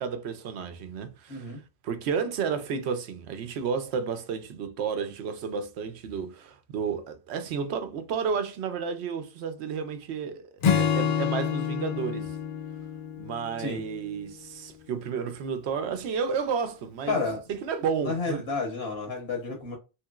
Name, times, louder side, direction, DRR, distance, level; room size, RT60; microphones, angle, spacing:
voice 1, 0.0-1.6 1.8-12.4 13.2-17.2 17.5-18.4, right 6 dB, 85° right, 0.8 m, -32 dB
voice 2, 1.3-1.6 13.6-13.8 17.1-17.4 18.0-19.8, left 3 dB, 75° left, 1.2 m, -30 dB
Acoustic guitar / Strum, 10.6-14.1, left 7 dB, 55° left, 0.5 m, -28 dB
3.1 x 2.8 x 2.3 m
omnidirectional pair, 1.1 m